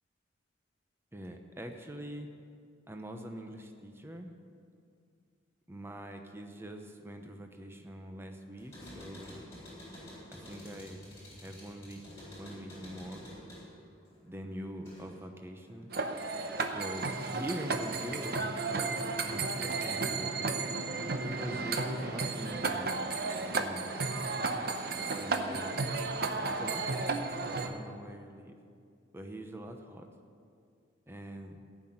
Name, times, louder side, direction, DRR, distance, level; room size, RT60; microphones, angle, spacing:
voice 1, 1.1-2.3 2.9-4.3 5.7-9.4 10.3-11.1 11.4-12.0 12.4-13.3 14.2-15.9 16.7-18.8 19.3-20.6 21.2-24.0 25.1-25.9 26.5-27.1 27.6-28.5 29.1-30.0 31.1-31.6, equal, 15° right, 4 dB, 0.8 m, -43 dB
sound 1, 8.6-15.3 15.7-16.5, equal, 15° left, 3.9 m, -50 dB
sound 2, 15.9-27.7, right 3 dB, 55° right, 0.8 m, -33 dB
15.0 x 6.0 x 8.8 m, 2.3 s
head